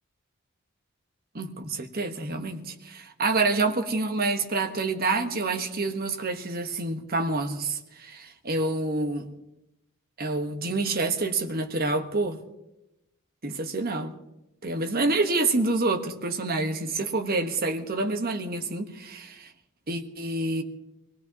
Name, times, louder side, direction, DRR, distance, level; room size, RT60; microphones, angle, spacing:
voice 1, 1.3-9.3 10.2-12.4 13.4-14.1 14.6-19.5 19.9-20.6, right 3 dB, 45° right, 5 dB, 1.4 m, -27 dB
25.5 x 17.5 x 3.0 m, 0.90 s
head